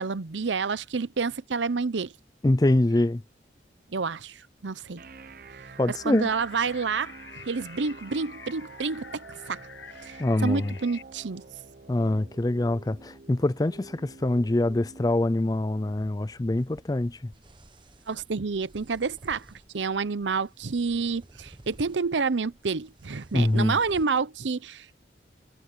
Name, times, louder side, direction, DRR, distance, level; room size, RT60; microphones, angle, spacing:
voice 1, 0.0-2.1 3.9-5.1 6.0-7.1 7.4-9.7 10.0-11.4 18.1-25.0, right 4 dB, 85° right, 0.7 m, -29 dB
voice 2, 2.4-3.2 5.8-6.3 10.2-10.7 11.9-17.3 23.3-23.8, left 1 dB, 20° left, 0.4 m, -24 dB
sound 1, 5.0-18.9, right 4 dB, 50° right, 0.8 m, -49 dB
sound 2, 6.1-11.0, left 7 dB, 80° left, 1.0 m, -48 dB
sound 3, 16.6-24.0, right 1 dB, 25° right, 1.0 m, -54 dB
head